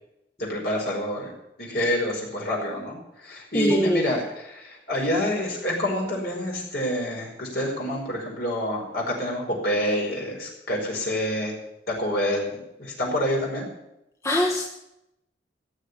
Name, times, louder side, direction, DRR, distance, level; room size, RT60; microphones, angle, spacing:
voice 1, 0.4-1.3 1.6-11.6 11.9-13.7, left 1 dB, 55° left, -1 dB, 5.0 m, -27 dB
voice 2, 3.5-4.0 14.2-14.6, equal, 15° left, -1 dB, 1.2 m, -22 dB
16.0 x 6.7 x 9.8 m, 0.86 s
head